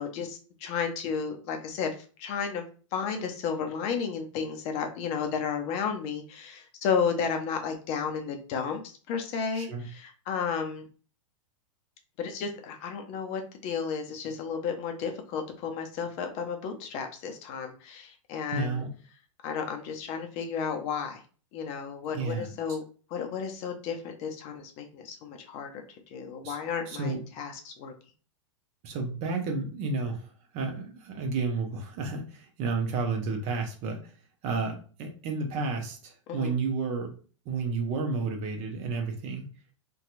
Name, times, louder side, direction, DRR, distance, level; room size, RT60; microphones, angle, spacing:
voice 1, 0.0-2.6 2.9-8.8 9.1-10.8 12.2-18.8 19.4-21.2 21.5-22.8 23.1-25.8 26.1-27.9 36.3-36.5, left 6 dB, 40° left, 5 dB, 0.5 m, -33 dB
voice 2, 9.5-9.8 18.5-18.9 22.1-22.5 26.4-26.6 26.9-27.2 28.8-30.3 30.5-34.1 34.4-37.1 37.5-39.5, right 4 dB, 40° right, 3 dB, 0.7 m, -31 dB
2.7 x 2.3 x 2.5 m, 0.39 s
hypercardioid pair, 105°, 17 cm